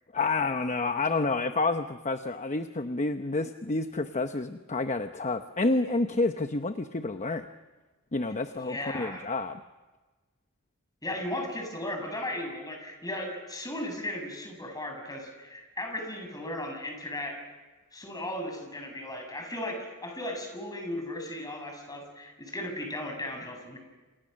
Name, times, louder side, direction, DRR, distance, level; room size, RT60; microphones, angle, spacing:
voice 1, 0.1-7.5 8.1-9.6, left 3 dB, 35° left, 8 dB, 0.9 m, -29 dB
voice 2, 8.5-9.2 11.0-17.3 17.9-23.8, left 1 dB, 15° left, 3 dB, 6.5 m, -36 dB
28.5 x 28.5 x 6.5 m, 1.2 s
head